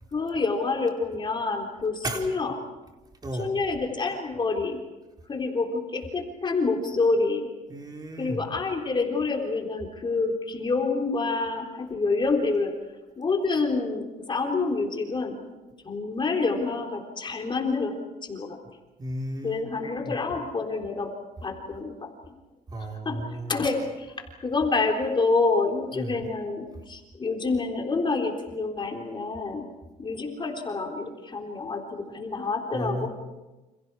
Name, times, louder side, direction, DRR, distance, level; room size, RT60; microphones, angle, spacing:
voice 1, 0.1-2.6 3.4-4.8 5.3-7.5 8.2-12.7 13.2-15.4 15.8-18.0 18.2-18.6 19.4-21.1 21.4-22.3 23.1-23.2 23.5-29.7 30.0-33.1, left 3 dB, 30° left, 2 dB, 3.7 m, -27 dB
voice 2, 7.7-8.4 19.0-20.2 22.7-23.6 25.9-26.2 32.7-33.1, right 1 dB, 25° right, 1 dB, 4.5 m, -34 dB
29.5 x 28.0 x 4.9 m, 1.1 s
cardioid pair, 110°, 17 cm